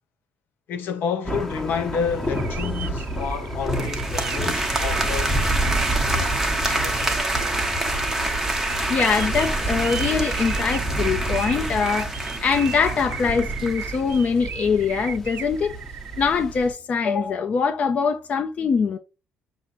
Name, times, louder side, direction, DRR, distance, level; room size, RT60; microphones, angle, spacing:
voice 1, 0.7-5.3 5.8-7.1, left 6 dB, 65° left, 1.0 m, -30 dB
sound 1, 1.2-16.7, right 1 dB, 10° left, 1.0 m, -30 dB
sound 2, 2.2-16.4, right 9 dB, 60° right, 0.5 m, -37 dB
sound 3, 3.7-14.0, right 1 dB, 10° right, 0.9 m, -27 dB
voice 2, 8.9-12.1 12.4-15.7 16.2-19.0, left 5 dB, 40° left, 0.5 m, -23 dB
5.9 x 2.1 x 4.1 m
cardioid pair, 130°, 4 cm